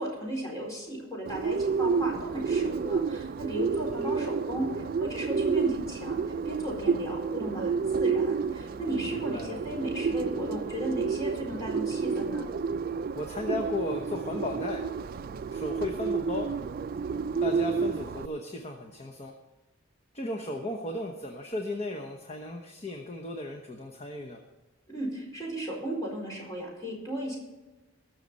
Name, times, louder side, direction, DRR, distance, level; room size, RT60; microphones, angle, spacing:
voice 1, 0.0-12.5 24.9-27.4, right 1 dB, 15° left, -3 dB, 4.3 m, -35 dB
Bird, 1.3-18.3, right 5 dB, 45° right, 0.3 m, -30 dB
voice 2, 9.1-9.6 13.2-14.8 15.5-16.5 17.4-19.3 20.1-24.4, left 2 dB, 30° left, 3 dB, 1.0 m, -35 dB
19.5 x 6.6 x 4.2 m, 1.1 s
head